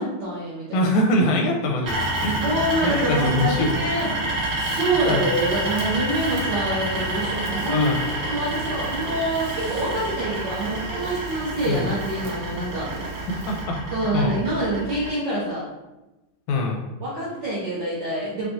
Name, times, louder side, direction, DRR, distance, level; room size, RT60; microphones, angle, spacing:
voice 1, 0.0-0.9 2.4-4.2 4.5-7.9 8.2-12.9 13.9-15.7 17.0-18.4, right 1 dB, 70° right, -9 dB, 1.1 m, -26 dB
voice 2, 0.7-3.7 5.1-5.2 7.6-8.0 11.7-11.9 13.3-14.4 16.5-16.8, left 1 dB, 85° left, 0 dB, 2.0 m, -24 dB
sound 1, 1.8-15.1, right 2 dB, 55° right, 1.6 m, -29 dB
Fire, 1.9-13.6, right 2 dB, 90° right, 1.2 m, -37 dB
5.8 x 2.3 x 2.6 m, 1.0 s
omnidirectional pair, 3.4 m